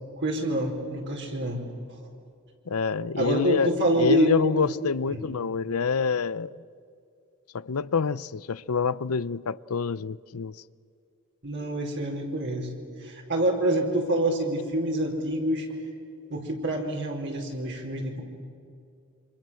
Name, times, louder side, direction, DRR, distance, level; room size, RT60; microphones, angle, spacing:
voice 1, 0.2-2.0 3.2-4.3 4.6-4.7 5.1-5.2 11.4-12.7 13.0-15.7 16.3-18.2, right 1 dB, 55° right, 4.7 m, -27 dB
voice 2, 2.7-3.7 4.0-6.5 7.5-10.5, left 5 dB, 70° left, 0.6 m, -27 dB
28.0 x 26.0 x 7.7 m
head